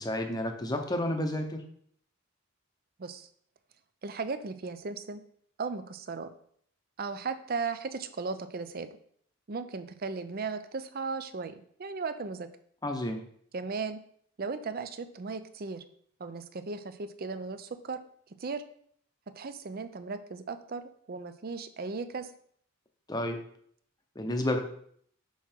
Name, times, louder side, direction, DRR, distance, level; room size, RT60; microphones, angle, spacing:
voice 1, 0.0-1.6 12.8-13.2 23.1-23.4 24.2-24.6, left 1 dB, 20° left, 4 dB, 0.7 m, -31 dB
voice 2, 4.0-5.2 5.6-6.3 7.0-8.9 9.5-12.5 13.5-14.0 14.4-15.8 16.2-18.0 18.4-18.6 19.4-20.8 21.1-22.3, right 4 dB, 40° right, 11 dB, 0.5 m, -36 dB
5.9 x 5.6 x 4.4 m, 0.63 s
head